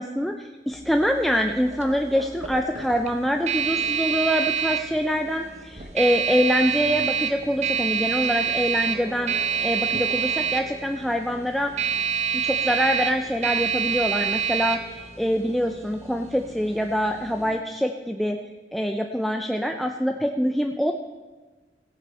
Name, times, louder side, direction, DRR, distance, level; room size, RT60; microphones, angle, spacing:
voice 1, 0.0-9.3 9.6-11.7 12.3-18.4 18.7-20.9, equal, ahead, 4 dB, 0.4 m, -25 dB
sound 1, 0.7-17.6, right 7 dB, 40° right, 1.0 m, -28 dB
17.0 x 8.7 x 4.2 m, 1.3 s
head